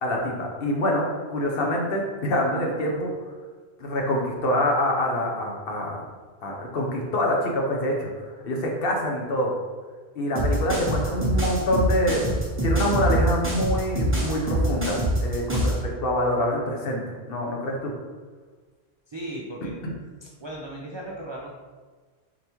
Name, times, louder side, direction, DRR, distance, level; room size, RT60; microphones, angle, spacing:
voice 1, 0.0-3.1 3.8-6.0 6.4-8.1 8.4-9.6 10.2-12.2 12.6-17.9, left 1 dB, 65° left, 0 dB, 0.9 m, -25 dB
sound 1, 10.4-15.8, right 1 dB, 15° right, 0.6 m, -24 dB
voice 2, 19.1-19.7 20.2-21.5, right 1 dB, 50° right, -3 dB, 0.3 m, -36 dB
4.1 x 3.4 x 2.9 m, 1.4 s
omnidirectional pair, 1.1 m